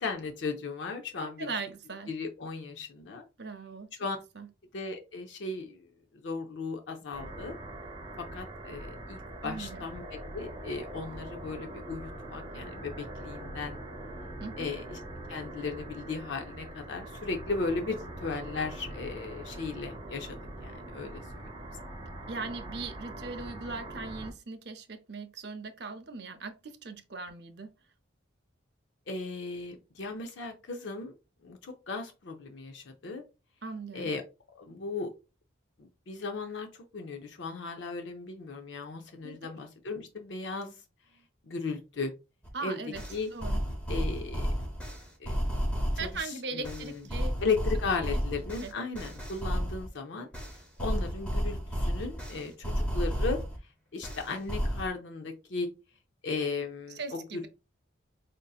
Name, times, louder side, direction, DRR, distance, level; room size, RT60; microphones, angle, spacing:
voice 1, 0.0-1.5 2.1-3.2 4.0-4.2 4.7-5.9 6.1-7.5 8.2-13.8 14.6-15.0 15.3-21.2 29.1-31.1 31.4-33.2 33.9-34.2 34.5-35.1 35.8-40.8 41.4-42.1 42.6-42.8 43.1-43.3 43.9-44.5 45.2-45.4 46.0-47.1 47.4-50.3 50.8-53.4 53.9-55.7 56.2-57.5, left 4 dB, 70° left, 0.5 m, -36 dB
voice 2, 1.4-2.1 3.4-3.9 4.4-4.5 9.4-9.8 14.4-14.7 22.3-27.7 33.6-34.1 39.2-39.5 42.5-43.0 43.3-43.6 45.9-47.3 48.1-48.2 48.6-48.7 56.9-57.5, right 4 dB, 55° right, 0.6 m, -39 dB
sound 1, 7.1-24.3, right 1 dB, 25° right, 0.9 m, -43 dB
sound 2, 42.4-42.5 43.0-46.2 46.6-49.9 50.3-53.6 54.0-54.9, equal, 5° left, 0.8 m, -32 dB
5.1 x 2.6 x 2.3 m
head